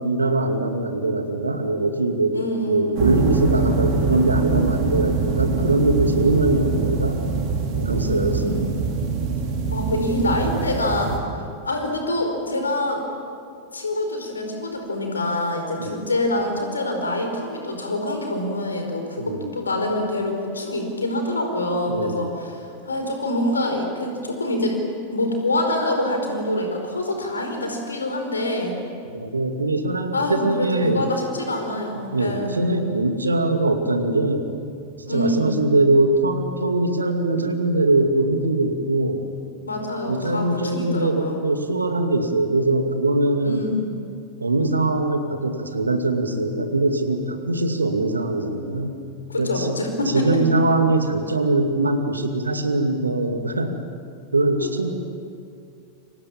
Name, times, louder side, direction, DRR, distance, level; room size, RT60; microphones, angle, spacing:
voice 1, 0.0-7.2 7.7-8.9 15.8-16.0 19.2-19.5 21.9-22.3 29.1-31.1 31.9-34.5 35.0-39.3 40.1-43.7 44.4-49.0 49.4-49.8 50.1-53.8 54.3-54.9, right 2 dB, 80° right, 6 dB, 2.3 m, -22 dB
voice 2, 2.3-3.0 7.9-8.6 9.7-11.2 11.6-13.0 13.7-22.6 22.8-24.8 25.1-28.8 30.1-32.6 35.1-35.6 39.7-41.4 43.4-43.8 49.3-50.5 54.6-54.9, left 1 dB, 75° left, 4 dB, 4.8 m, -25 dB
sound 1, 2.9-11.2, right 4 dB, 45° right, 4.1 m, -24 dB
29.0 x 25.0 x 7.4 m, 2.4 s
figure-of-eight pair, 90°, 0 cm